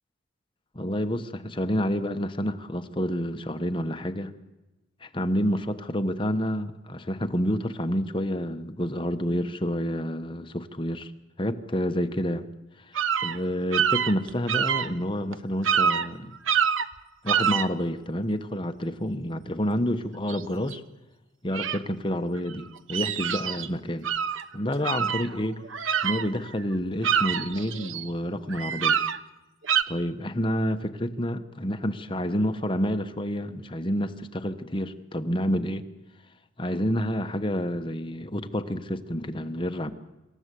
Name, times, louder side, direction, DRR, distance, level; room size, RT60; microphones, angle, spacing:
voice 1, 0.7-4.3 5.0-11.1 11.4-12.4 12.8-13.0 13.2-16.4 17.2-20.8 21.4-24.1 24.5-25.6 26.0-29.0 29.9-35.9 36.6-39.9, equal, 25° left, 8 dB, 1.1 m, -29 dB
sound 1, 12.9-13.4 13.7-14.9 15.3-15.4 15.6-16.1 16.5-16.9 17.3-17.7 20.3-20.4 20.7-20.8 21.5-21.8 22.5-23.7 24.0-24.4 24.8-26.5 26.8-28.1 28.5-29.2 29.6-29.8, right 8 dB, 75° right, 1.0 m, -26 dB
26.5 x 14.0 x 8.4 m, 1.0 s
head